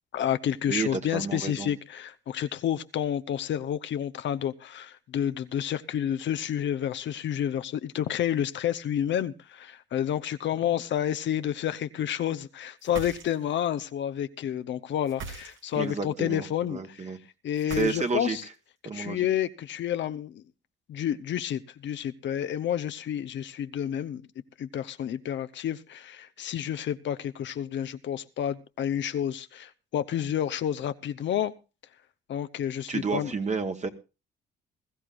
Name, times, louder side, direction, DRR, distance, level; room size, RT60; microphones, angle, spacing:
voice 1, 0.1-17.0 17.4-18.4 18.9-20.4 20.9-24.2 24.6-31.5 32.3-33.3, left 10 dB, 70° left, 12 dB, 0.8 m, -30 dB
voice 2, 0.7-1.7 15.7-17.2 17.7-18.4 18.8-19.3 32.9-33.9, right 4 dB, 35° right, 5 dB, 1.4 m, -31 dB
sound 1, 12.8-13.7 15.0-15.9 17.6-18.4, right 5 dB, 75° right, 2.3 m, -40 dB
21.0 x 14.0 x 2.5 m, 0.31 s
cardioid pair, 90°, 20 cm